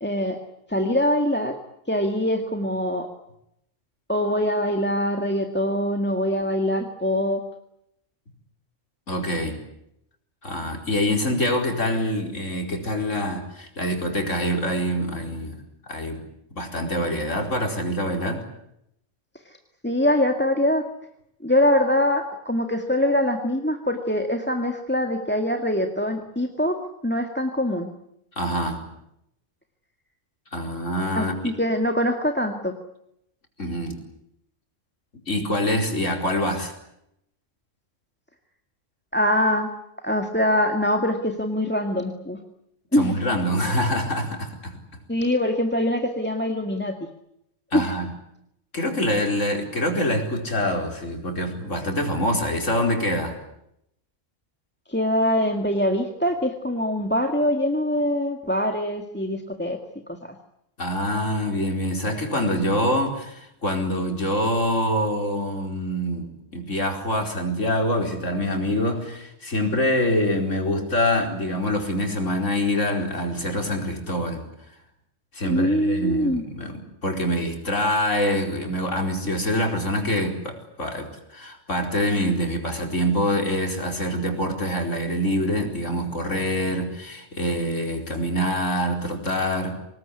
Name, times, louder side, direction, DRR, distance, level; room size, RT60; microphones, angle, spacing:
voice 1, 0.0-0.4 0.7-1.6 1.9-3.1 4.1-7.4 19.5-19.6 19.8-20.9 21.4-26.8 27.0-27.9 31.2-32.7 39.1-39.7 40.0-42.4 42.9-43.2 45.1-47.0 47.7-47.9 54.9-59.8 60.1-60.4 75.5-76.4, left 1 dB, 10° left, 5 dB, 1.9 m, -23 dB
voice 2, 9.1-9.6 10.4-16.2 16.6-18.4 28.4-28.8 30.5-31.5 33.6-34.0 35.3-36.7 42.9-44.8 47.7-48.1 48.7-53.4 60.8-74.4 75.3-76.7 77.0-89.8, equal, 90° left, 3 dB, 5.0 m, -25 dB
26.0 x 19.5 x 9.8 m, 0.79 s
omnidirectional pair, 1.3 m